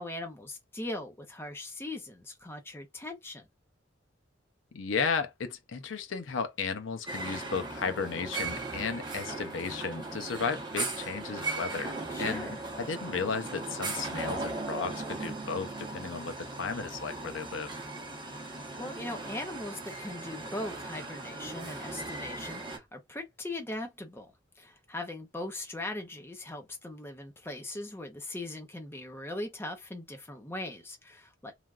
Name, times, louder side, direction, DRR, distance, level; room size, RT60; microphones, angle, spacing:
voice 1, 0.0-3.5 12.1-12.6 18.4-31.5, left 1 dB, 10° left, 0.6 m, -40 dB
voice 2, 4.7-17.7, left 5 dB, 80° left, 0.6 m, -34 dB
sound 1, 7.1-22.8, right 3 dB, 25° right, 1.0 m, -38 dB
3.3 x 2.3 x 2.4 m
head